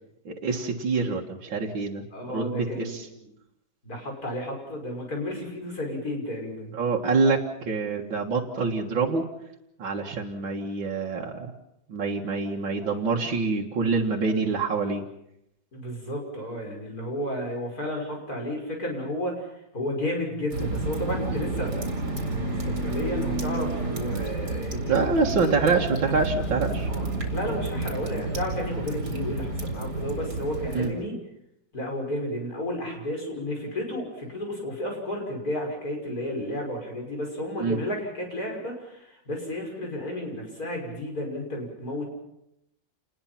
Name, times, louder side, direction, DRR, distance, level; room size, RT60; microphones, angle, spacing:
voice 1, 0.3-2.0 2.3-3.1 6.7-9.3 9.8-11.5 11.9-15.0 24.7-26.9 30.7-30.9 37.6-37.8, right 4 dB, 75° right, -2 dB, 2.5 m, -26 dB
voice 2, 2.1-3.3 3.8-6.8 15.7-19.5 19.7-25.8 26.9-31.2 31.7-42.0, left 1 dB, 50° left, 1 dB, 6.6 m, -32 dB
sound 1, 20.5-30.9, right 2 dB, 55° right, 4.5 m, -30 dB
29.0 x 20.5 x 5.9 m, 0.80 s
omnidirectional pair, 2.1 m